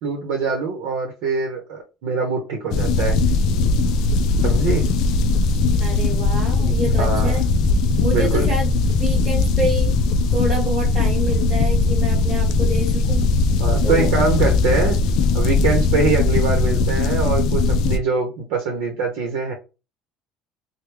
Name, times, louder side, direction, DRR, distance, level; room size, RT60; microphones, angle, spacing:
voice 1, 0.0-3.2 4.4-4.9 7.0-7.4 8.1-8.5 13.6-15.0 15.3-19.5, right 4 dB, 70° right, 2 dB, 0.8 m, -23 dB
sound 1, 2.7-18.0, left 3 dB, 55° left, 0.3 m, -19 dB
voice 2, 5.8-7.4 8.0-9.9 10.3-13.3 13.8-14.1, right 1 dB, 15° right, -6 dB, 1.2 m, -28 dB
3.4 x 2.2 x 3.1 m, 0.30 s
cardioid pair, 165°, 0 cm